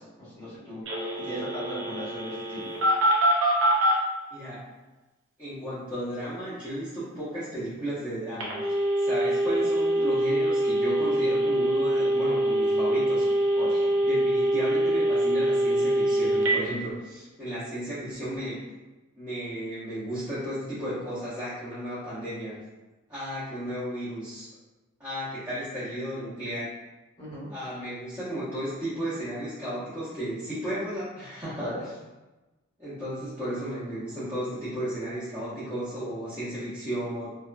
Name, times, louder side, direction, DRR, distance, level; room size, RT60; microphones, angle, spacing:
voice 1, 0.0-2.7 13.6-13.8 27.2-27.5 31.6-31.8, equal, 20° left, -10 dB, 1.0 m, -38 dB
Telephone, 0.9-4.0 8.4-16.6, right 1 dB, 65° right, 0.6 m, -24 dB
voice 2, 4.3-4.7 5.4-13.3 14.1-18.6 19.1-22.6 23.1-24.5 25.0-26.8 27.5-31.7 32.8-37.3, right 1 dB, 15° right, -15 dB, 0.8 m, -34 dB
2.7 x 2.2 x 2.5 m, 1.1 s
head